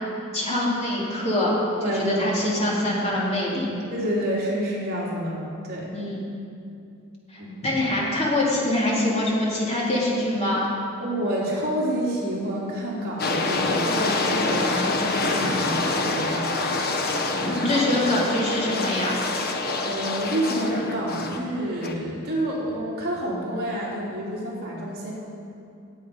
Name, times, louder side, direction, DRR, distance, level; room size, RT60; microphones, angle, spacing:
voice 1, 0.3-1.5 1.8-3.8 5.9-6.2 7.3-10.6 17.4-19.2, left 1 dB, 30° left, -5 dB, 3.1 m, -24 dB
voice 2, 1.8-2.6 3.9-5.9 7.4-7.7 11.0-16.5 17.4-18.1 19.8-25.1, equal, 50° right, -6 dB, 3.3 m, -28 dB
sound 1, 13.2-21.4 21.8-21.9, left 3 dB, 50° left, 1.2 m, -26 dB
18.5 x 8.6 x 5.3 m, 2.6 s
head